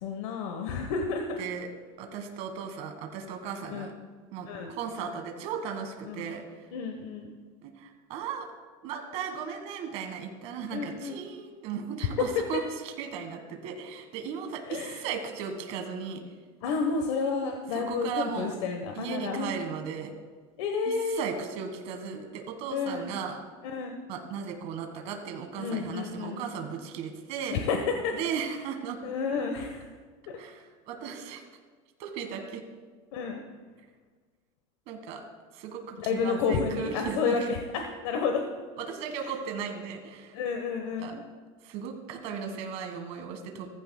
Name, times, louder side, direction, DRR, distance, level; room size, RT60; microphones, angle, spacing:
voice 1, 0.0-1.4 3.7-3.9 4.4-4.7 6.1-6.2 6.7-7.3 10.7-11.2 14.7-15.0 16.6-19.6 20.6-21.3 22.7-23.1 23.6-23.9 25.6-26.4 27.5-27.8 28.0-28.1 29.0-29.9 30.3-30.4 33.1-33.4 36.0-38.4 39.2-39.3 40.3-41.2, left 5 dB, 75° left, 4 dB, 1.2 m, -31 dB
voice 2, 2.0-3.9 4.3-6.7 7.6-8.5 8.8-16.2 17.7-18.5 18.9-20.1 20.8-23.4 24.1-27.6 28.1-29.0 30.4-31.4 32.0-32.6 34.9-35.2 35.5-37.5 38.9-40.4 41.0-41.1 41.6-43.7, right 6 dB, 45° right, 4 dB, 1.6 m, -36 dB
15.5 x 14.5 x 2.3 m, 1.5 s
supercardioid pair, 170°, 15 cm